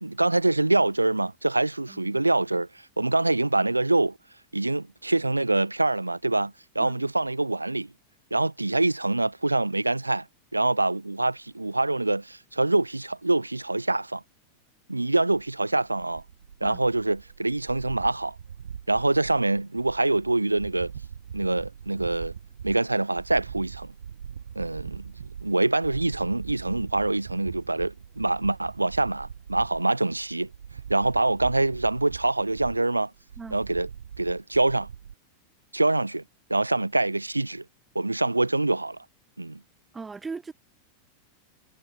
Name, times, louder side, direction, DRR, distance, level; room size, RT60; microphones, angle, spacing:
voice 1, 0.0-2.7 3.0-4.2 4.5-7.9 8.3-10.3 10.5-14.2 14.9-16.2 16.6-18.4 18.9-20.9 21.3-22.3 22.6-23.9 24.6-25.1 25.4-30.5 30.9-33.1 33.5-33.9 34.2-34.9 35.7-36.2 36.5-37.6 37.9-39.0 39.4-39.6, right 2 dB, 85° right, 0.4 m, -25 dB
sound 1, 15.3-35.1, right 8 dB, 70° right, 2.0 m, -42 dB
voice 2, 39.9-40.5, right 4 dB, 15° right, 1.5 m, -38 dB
figure-of-eight pair, 90°, 0 cm